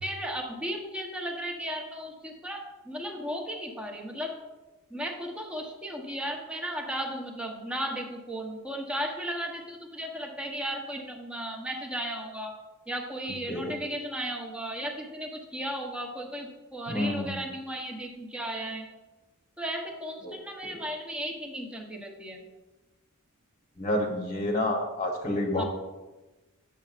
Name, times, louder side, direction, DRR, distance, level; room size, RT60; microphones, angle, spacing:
voice 1, 0.0-4.3 4.9-12.5 12.9-18.9 19.6-22.4 25.6-25.7, equal, 5° right, 1 dB, 0.9 m, -35 dB
voice 2, 16.9-17.3 20.2-20.3 20.6-20.8 23.8-25.6, left 1 dB, 30° left, 0 dB, 1.0 m, -29 dB
9.3 x 7.0 x 2.4 m, 1.1 s
head